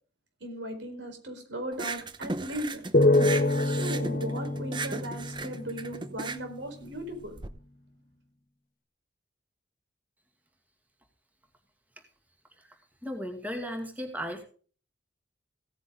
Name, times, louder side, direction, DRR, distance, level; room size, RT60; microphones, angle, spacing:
voice 1, 0.4-2.8 3.6-7.3, right 1 dB, 90° right, 5 dB, 4.5 m, -37 dB
sound 1, 1.7-7.5, right 3 dB, 25° right, 0.8 m, -36 dB
sound 2, 2.9-6.3, left 2 dB, 50° left, 1.5 m, -26 dB
voice 2, 13.0-14.4, equal, 10° right, 3 dB, 2.3 m, -36 dB
16.5 x 9.8 x 3.8 m, 0.40 s
head